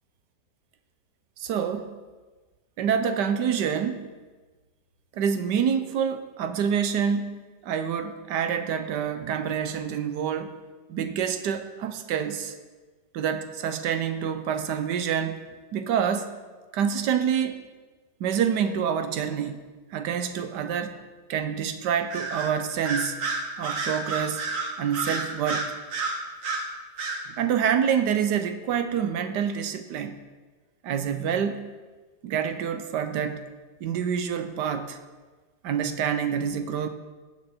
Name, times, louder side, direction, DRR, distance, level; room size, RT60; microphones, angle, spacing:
voice 1, 1.4-1.9 2.8-4.1 5.1-7.4 7.6-10.5 10.9-12.5 13.1-15.4 15.7-16.3 16.7-17.6 18.2-21.0 21.3-23.2 23.6-24.5 24.8-25.7 27.4-30.2 30.8-31.7 32.2-33.5 33.8-35.0 35.6-36.9, right 8 dB, 85° right, 8 dB, 1.4 m, -27 dB
Bird vocalization bird call bird song, 22.1-22.5 22.8-26.7 27.0-27.2, right 3 dB, 50° right, 1.7 m, -30 dB
18.5 x 6.4 x 4.3 m, 1.3 s
omnidirectional pair, 1.8 m